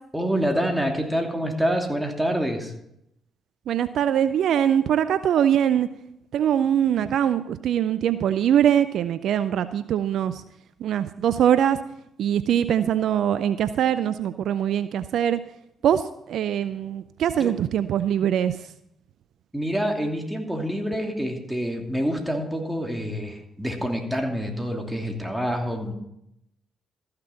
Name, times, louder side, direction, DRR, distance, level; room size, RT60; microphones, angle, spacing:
voice 1, 0.1-2.7 17.3-17.5 19.5-25.9, equal, 5° right, 2 dB, 2.7 m, -27 dB
voice 2, 3.7-5.9 6.3-10.4 10.8-11.8 12.2-15.4 15.8-18.7, right 9 dB, 70° right, 13 dB, 0.4 m, -22 dB
14.0 x 6.7 x 5.7 m, 0.79 s
hypercardioid pair, 45°, 0 cm